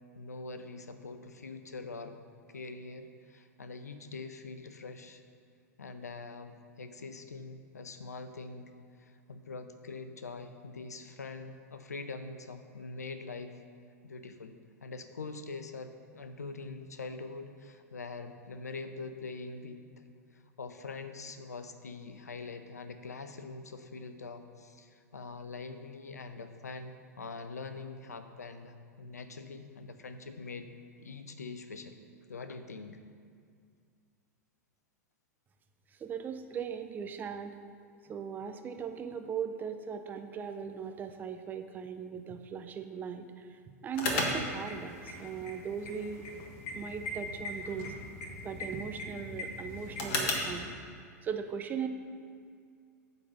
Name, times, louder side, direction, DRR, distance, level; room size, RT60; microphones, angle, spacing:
voice 1, 0.2-2.2 2.5-5.2 5.8-8.7 9.0-13.6 14.0-14.5 14.8-30.7 31.0-32.0 32.3-33.0, left 3 dB, 75° left, 9 dB, 0.6 m, -44 dB
voice 2, 36.0-37.6 38.1-43.3 43.7-46.3 46.7-47.9 48.4-50.7 51.2-51.9, right 7 dB, 20° right, 7 dB, 0.5 m, -38 dB
sound 1, 43.9-50.6, left 2 dB, 45° left, 1.3 m, -37 dB
9.8 x 4.0 x 6.7 m, 2.2 s
figure-of-eight pair, 95°, 9 cm